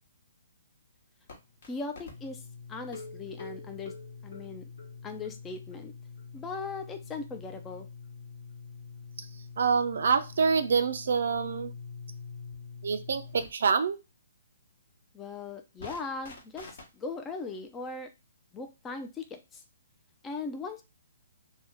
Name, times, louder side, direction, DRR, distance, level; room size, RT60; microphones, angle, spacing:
sound 1, 1.3-1.7 2.0-13.5 15.8-16.8, left 5 dB, 55° left, 1.0 m, -45 dB
voice 1, 1.6-4.0 4.2-4.6 5.0-5.9 6.3-7.9 15.1-18.1 18.5-19.6 20.2-20.8, left 4 dB, 15° left, 5 dB, 0.4 m, -39 dB
sound 2, 2.9-5.4 5.7-5.8 6.2-6.3 6.6-6.7, left 3 dB, 75° left, 1.3 m, -47 dB
voice 2, 9.6-11.7 12.8-14.0, right 5 dB, 70° right, 9 dB, 0.4 m, -26 dB
2.6 x 2.1 x 3.5 m, 0.26 s
hypercardioid pair, 140°, 0 cm